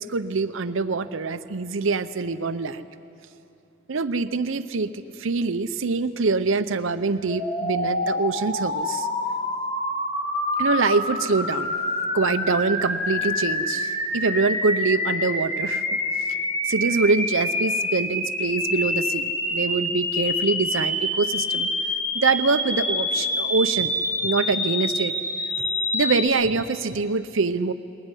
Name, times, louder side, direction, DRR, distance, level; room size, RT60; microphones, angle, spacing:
voice 1, 0.0-2.8 3.9-9.1 10.6-11.8 12.1-15.8 16.6-21.7 22.1-23.9 24.2-25.1 25.9-27.7, right 4 dB, 70° right, 11 dB, 0.7 m, -24 dB
sound 1, 7.3-26.3, left 1 dB, 30° left, 2.3 m, -26 dB
21.0 x 20.0 x 9.9 m, 2.7 s
head